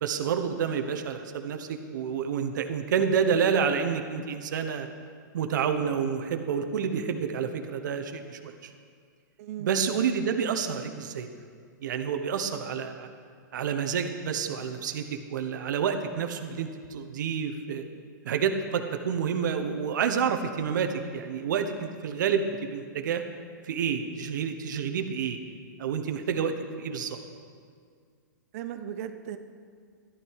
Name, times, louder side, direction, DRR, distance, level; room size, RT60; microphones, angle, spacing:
voice 1, 0.0-4.9 5.3-8.7 9.6-11.3 11.8-13.1 13.5-17.8 18.2-23.2 23.6-25.4 25.8-27.2, right 7 dB, 70° right, 6 dB, 1.1 m, -29 dB
voice 2, 9.4-9.7 28.5-29.4, right 10 dB, 50° right, 9 dB, 0.8 m, -37 dB
13.5 x 11.5 x 4.8 m, 2.1 s
hypercardioid pair, 145°, 10 cm